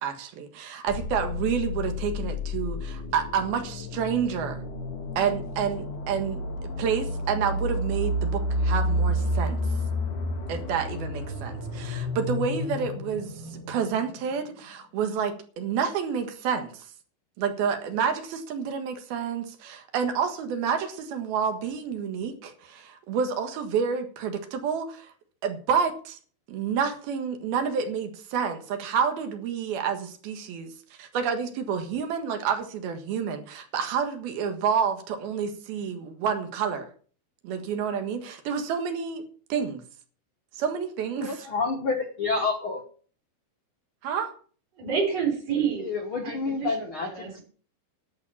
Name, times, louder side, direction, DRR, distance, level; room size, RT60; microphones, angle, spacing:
voice 1, 0.0-4.6 5.2-9.6 10.5-16.9 17.4-25.1 25.4-26.2 26.5-30.7 31.0-36.9 37.4-39.8 40.5-41.5 44.0-44.3, right 7 dB, 75° right, 3.5 m, -29 dB
sound 1, 0.9-14.6, left 1 dB, 55° left, 3.8 m, -31 dB
voice 2, 41.2-42.8 45.5-47.4, left 4 dB, 75° left, 1.1 m, -29 dB
voice 3, 44.8-45.9 46.2-47.4, right 6 dB, 40° right, 5.2 m, -29 dB
11.5 x 7.7 x 7.2 m
omnidirectional pair, 4.4 m